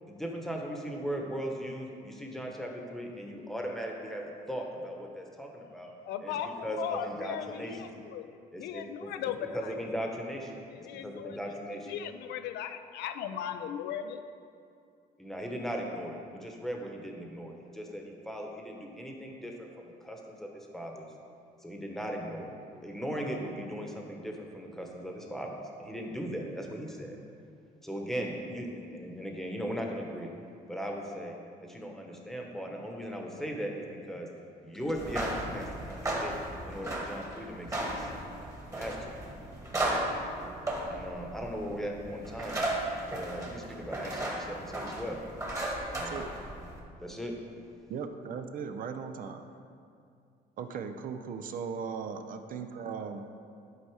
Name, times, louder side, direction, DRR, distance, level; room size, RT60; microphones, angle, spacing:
voice 1, 0.0-5.9 6.2-7.8 8.5-9.3 9.5-10.5 10.8-11.9 15.2-21.1 21.6-22.6 22.8-27.2 27.8-30.3 30.7-34.3 34.6-36.3 36.7-38.1 38.7-39.1 40.9-42.7 43.1-45.2 45.9-46.3 47.0-47.3, equal, ahead, 0 dB, 1.1 m, -38 dB
voice 2, 6.1-8.3 8.6-9.7 10.7-11.4 11.9-14.2, left 9 dB, 80° left, 9 dB, 0.5 m, -37 dB
sound 1, 34.9-46.8, right 1 dB, 20° right, 1.4 m, -35 dB
voice 3, 45.9-46.3 47.9-49.5 50.6-53.3, right 6 dB, 55° right, 7 dB, 0.5 m, -38 dB
11.0 x 4.2 x 4.7 m, 2.4 s
cardioid pair, 110°, 17 cm